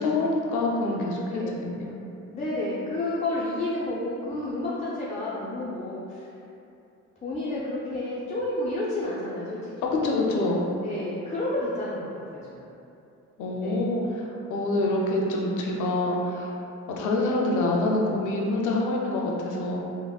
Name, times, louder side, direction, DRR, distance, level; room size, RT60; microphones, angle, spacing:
voice 1, 0.0-1.9 10.0-10.6 13.4-16.5 17.0-19.8, left 2 dB, 80° left, -1 dB, 0.5 m, -26 dB
voice 2, 1.3-1.6 2.3-6.3 7.2-9.7 10.8-12.7 13.6-13.8 14.7-14.8, left 2 dB, 25° left, -8 dB, 0.4 m, -31 dB
3.4 x 2.1 x 2.3 m, 2.8 s
cardioid pair, 90°, 30 cm